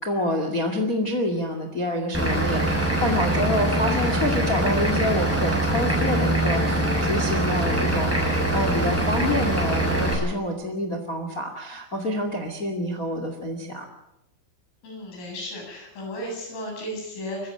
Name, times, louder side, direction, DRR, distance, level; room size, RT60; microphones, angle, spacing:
voice 1, 0.0-13.9, left 1 dB, 55° left, 5 dB, 0.9 m, -27 dB
Vehicle / Engine, 2.1-10.1, right 1 dB, 5° right, 7.4 m, -23 dB
voice 2, 14.8-17.5, equal, 90° left, 1 dB, 10.5 m, -34 dB
24.0 x 15.0 x 9.0 m, 0.89 s
omnidirectional pair, 5.8 m